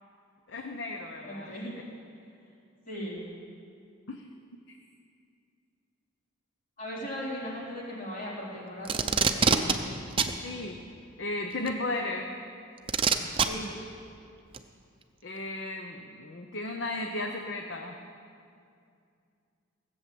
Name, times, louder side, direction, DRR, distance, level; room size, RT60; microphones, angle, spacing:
voice 1, 0.5-1.6 4.1-4.2 4.7-4.8 10.4-10.8 11.2-12.3 15.2-18.0, left 2 dB, 60° left, 4 dB, 0.8 m, -35 dB
voice 2, 1.2-1.8 2.9-3.2 6.8-9.7 13.4-13.7, equal, 40° left, -5 dB, 3.8 m, -38 dB
Packing tape duct tape, 8.8-9.7 10.2-10.3 11.7-11.8 12.9-13.5 14.5-14.6, right 6 dB, 25° right, 0.6 m, -23 dB
17.0 x 7.9 x 7.7 m, 2.4 s
head